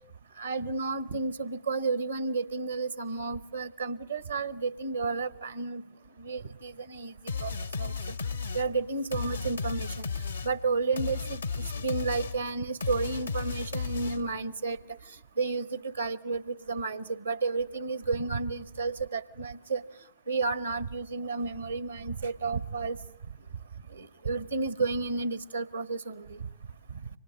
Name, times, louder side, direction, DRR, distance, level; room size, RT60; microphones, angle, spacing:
voice 1, 0.4-5.8 6.2-7.1 7.4-7.9 8.5-10.1 10.4-14.8 15.4-19.8 20.3-23.0 23.9-26.4 26.9-27.0, right 4 dB, 80° right, 16 dB, 1.1 m, -32 dB
sound 1, 7.3-14.5, left 5 dB, 80° left, 1.0 m, -34 dB
28.5 x 25.0 x 7.3 m, 0.71 s
figure-of-eight pair, 90°, 0 cm